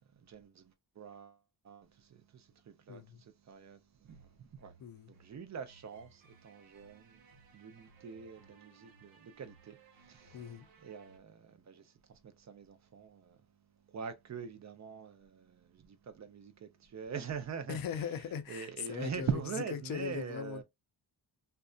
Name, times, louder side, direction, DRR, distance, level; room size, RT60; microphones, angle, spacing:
voice 1, 0.1-1.4 1.6-4.7 5.1-7.2 7.5-13.4 13.9-17.8 18.5-20.6, right 6 dB, 40° right, 0.5 m, -43 dB
voice 2, 2.9-3.2 4.8-5.1 10.3-10.7 17.7-19.3 19.8-20.6, left 8 dB, 50° left, 0.5 m, -40 dB
sound 1, 4.1-11.2, right 4 dB, 75° right, 0.9 m, -62 dB
2.5 x 2.2 x 2.3 m
cardioid pair, 75°, 45 cm